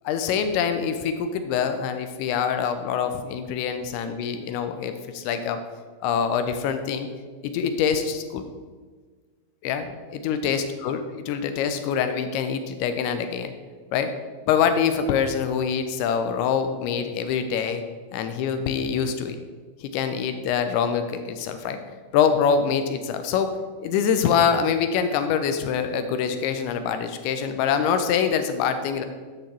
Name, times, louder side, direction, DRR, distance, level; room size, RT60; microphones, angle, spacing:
voice 1, 0.0-5.6 6.0-7.1 7.4-8.4 9.6-13.5 13.9-14.1 14.5-17.8 18.1-19.4 19.8-21.8 22.1-23.5 23.8-29.0, left 7 dB, 45° left, 8 dB, 0.7 m, -25 dB
6.5 x 6.4 x 4.6 m, 1.5 s
figure-of-eight pair, 90°, 0 cm